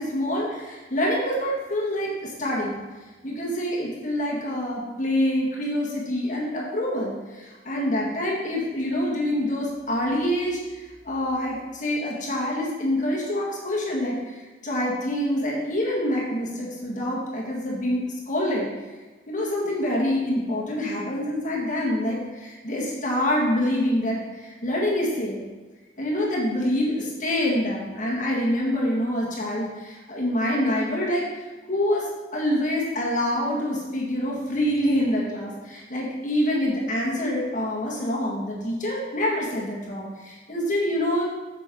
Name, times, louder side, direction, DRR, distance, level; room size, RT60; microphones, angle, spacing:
voice 1, 0.0-2.8 3.2-18.7 19.3-25.4 26.0-31.2 31.7-41.2, left 1 dB, 45° left, -4 dB, 1.8 m, -26 dB
8.9 x 6.2 x 3.7 m, 1.3 s
head